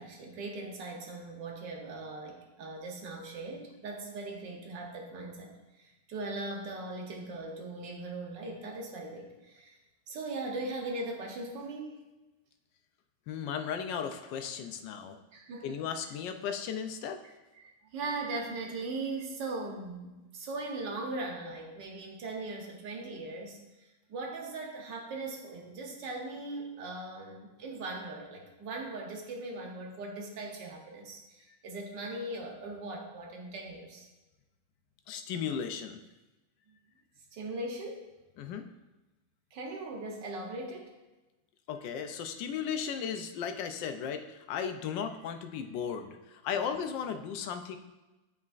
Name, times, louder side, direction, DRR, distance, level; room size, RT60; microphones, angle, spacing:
voice 1, 0.0-9.8 10.1-12.0 15.3-15.8 17.2-34.1 37.3-38.0 39.5-40.9 46.5-46.8, right 2 dB, 80° right, 1 dB, 1.6 m, -39 dB
voice 2, 13.3-15.2 15.6-17.2 35.1-36.0 38.4-38.6 41.7-47.8, left 7 dB, 85° left, 7 dB, 1.3 m, -36 dB
10.5 x 4.2 x 2.4 m, 1.1 s
omnidirectional pair, 1.9 m